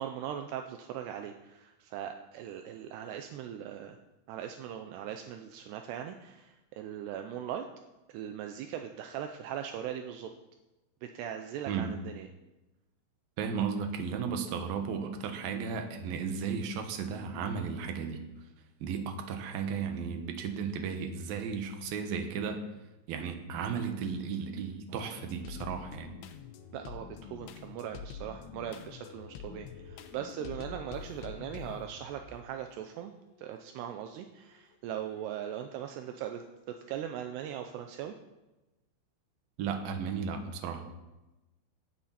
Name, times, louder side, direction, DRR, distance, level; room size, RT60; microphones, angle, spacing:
voice 1, 0.0-4.0 4.3-7.7 8.1-10.3 11.0-12.3 26.7-33.1 33.4-38.1, right 9 dB, 80° right, 6 dB, 2.5 m, -40 dB
voice 2, 13.4-18.2 18.8-22.6 23.1-26.1 39.6-40.8, right 6 dB, 65° right, 6 dB, 2.7 m, -34 dB
sound 1, 25.2-32.6 33.1-34.0 34.6-34.7 35.1-36.1, left 6 dB, 85° left, 3.3 m, -46 dB
17.5 x 12.5 x 4.3 m, 1.0 s
omnidirectional pair, 5.5 m